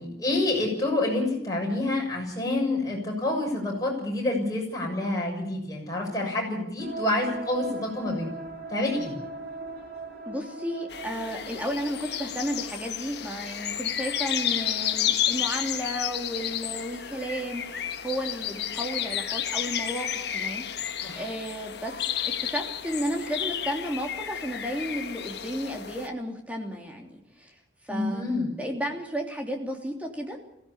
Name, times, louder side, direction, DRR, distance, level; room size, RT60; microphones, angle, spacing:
voice 1, 0.0-8.3 8.7-9.2 21.0-21.2 27.9-28.6, left 2 dB, 20° left, -1 dB, 6.9 m, -28 dB
sound 1, 6.8-12.6, right 2 dB, 55° right, 5.7 m, -39 dB
voice 2, 10.3-17.6 18.0-20.6 21.2-21.9 22.4-27.5 27.8-30.4, equal, 10° right, 1 dB, 3.0 m, -33 dB
sound 2, 10.9-26.1, left 10 dB, 60° left, 1.4 m, -31 dB
21.5 x 16.5 x 8.8 m, 0.82 s
head